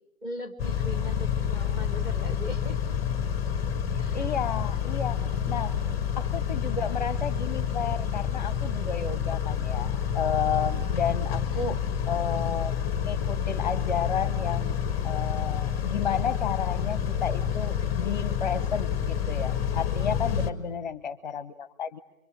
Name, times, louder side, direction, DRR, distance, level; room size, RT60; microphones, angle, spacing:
voice 1, 0.2-3.0 4.0-4.3 5.2-5.8 11.5-11.8 20.3-20.7, equal, 10° right, 9 dB, 1.8 m, -41 dB
Car / Idling / Accelerating revving vroom, 0.6-20.5, left 8 dB, 5° left, 1.1 m, -28 dB
voice 2, 4.1-5.8 6.1-11.8 12.1-12.7 13.1-14.8 15.0-22.0, left 7 dB, 35° left, 17 dB, 0.9 m, -32 dB
25.0 x 24.0 x 9.6 m, 0.92 s
figure-of-eight pair, 135°, 40 cm